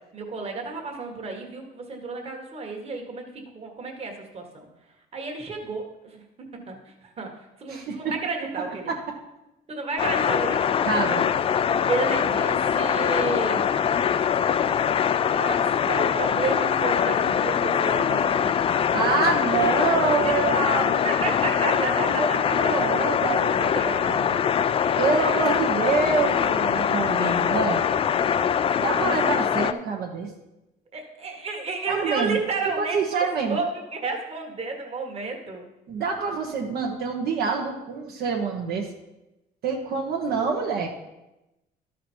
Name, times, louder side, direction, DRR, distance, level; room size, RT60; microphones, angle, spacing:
voice 1, 0.1-4.7 5.1-6.2 6.5-7.3 7.6-8.9 9.7-10.9 11.9-13.6 15.3-18.5 20.2-20.4 21.0-22.5 23.0-23.1 23.7-24.0 24.4-24.5 25.1-25.4 30.9-35.6, right 3 dB, 35° right, 2 dB, 1.6 m, -31 dB
voice 2, 7.7-8.1 8.9-9.0 10.8-11.3 18.9-24.4 25.0-27.8 28.8-30.3 31.9-32.4 32.8-33.6 35.9-38.9 39.6-40.9, right 4 dB, 70° right, -1 dB, 1.2 m, -26 dB
sound 1, 10.0-29.7, left 8 dB, 35° left, 0.3 m, -23 dB
12.5 x 5.0 x 4.5 m, 0.96 s
cardioid pair, 110°, 17 cm